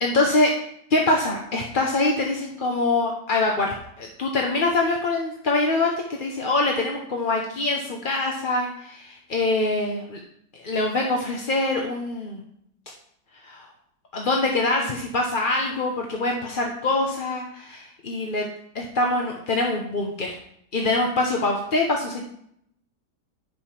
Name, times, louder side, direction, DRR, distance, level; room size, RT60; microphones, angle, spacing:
voice 1, 0.0-0.5 0.9-5.9 6.2-10.2 10.5-12.4 13.4-13.7 14.1-18.5 18.7-20.4 20.7-22.2, left 2 dB, 35° left, 0 dB, 0.9 m, -24 dB
10.5 x 5.4 x 5.9 m, 0.72 s
omnidirectional pair, 1.9 m